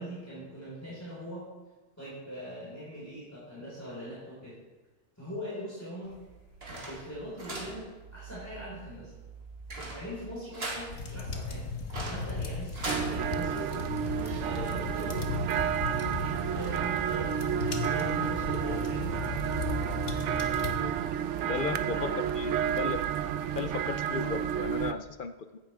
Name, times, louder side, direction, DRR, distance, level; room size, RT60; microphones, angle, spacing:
voice 1, 0.0-1.5 2.0-4.6 5.2-6.2 6.7-9.1 9.7-11.6 12.0-15.2 15.9-19.2 21.1-22.3, equal, 15° left, -8 dB, 4.9 m, -42 dB
sound 1, 6.0-13.1, right 2 dB, 60° right, 2.2 m, -41 dB
sound 2, 10.9-20.8, left 3 dB, 70° left, 1.5 m, -36 dB
sound 3, 12.9-24.9, right 9 dB, 85° right, 0.9 m, -31 dB
voice 2, 20.6-20.9 21.5-22.1 22.3-23.0 23.5-25.6, left 5 dB, 55° left, 9 dB, 0.7 m, -35 dB
16.0 x 10.0 x 3.6 m, 1.2 s
omnidirectional pair, 1.2 m